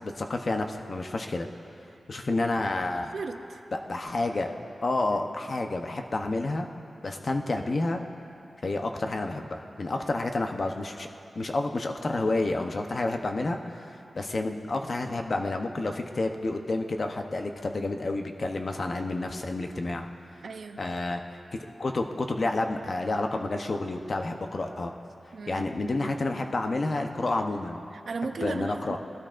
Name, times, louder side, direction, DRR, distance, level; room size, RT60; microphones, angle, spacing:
voice 1, 0.0-1.5 2.1-3.1 3.7-4.6 4.8-6.7 7.0-8.0 8.6-11.1 11.3-20.1 20.8-21.2 21.8-24.9 25.5-27.8 28.2-29.0, left 2 dB, 45° left, 4 dB, 0.8 m, -29 dB
voice 2, 3.1-3.6 20.4-20.8 25.3-25.7 27.9-29.0, right 4 dB, 70° right, 7 dB, 0.6 m, -36 dB
20.5 x 12.5 x 2.5 m, 2.6 s
wide cardioid pair, 115°, 0 cm